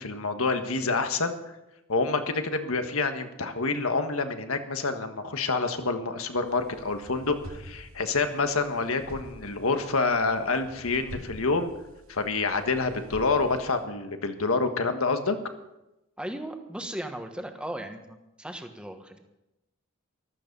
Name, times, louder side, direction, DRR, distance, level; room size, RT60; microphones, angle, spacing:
voice 1, 0.0-1.4 1.9-11.7 12.1-15.4, left 3 dB, 80° left, 7 dB, 1.5 m, -27 dB
sound 1, 6.5-13.8, equal, 75° right, 2.1 m, -47 dB
voice 2, 16.2-19.2, right 1 dB, 5° right, 5 dB, 1.3 m, -37 dB
15.0 x 13.5 x 5.4 m, 0.93 s
head